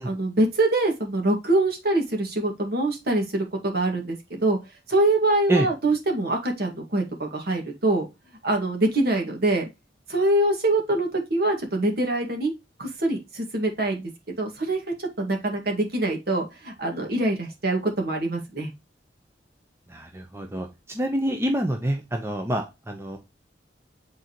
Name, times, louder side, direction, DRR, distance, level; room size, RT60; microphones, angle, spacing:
voice 1, 0.0-4.6 4.9-8.1 8.4-9.7 10.1-12.5 12.8-18.7, right 2 dB, 60° right, 2 dB, 2.1 m, -24 dB
voice 2, 19.9-23.2, right 1 dB, 15° right, 4 dB, 0.8 m, -27 dB
8.1 x 4.0 x 3.0 m, 0.22 s
head